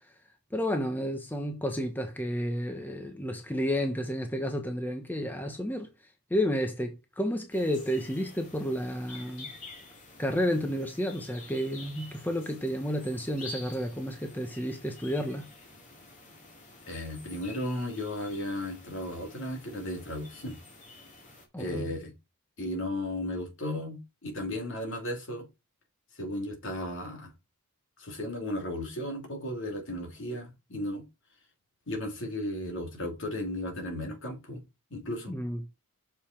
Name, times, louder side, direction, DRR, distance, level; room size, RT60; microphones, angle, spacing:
voice 1, 0.5-5.9 6.3-9.5 10.2-15.5 21.5-21.9 35.3-35.6, equal, 10° left, 1.0 m, -31 dB
sound 1, 7.5-21.5, left 2 dB, 35° left, 2.4 m, -49 dB
voice 2, 16.9-20.6 21.6-22.1 22.6-25.4 26.1-27.3 28.0-31.0 31.9-34.6 34.9-35.3, left 1 dB, 60° left, 2.9 m, -35 dB
6.8 x 5.5 x 4.5 m
head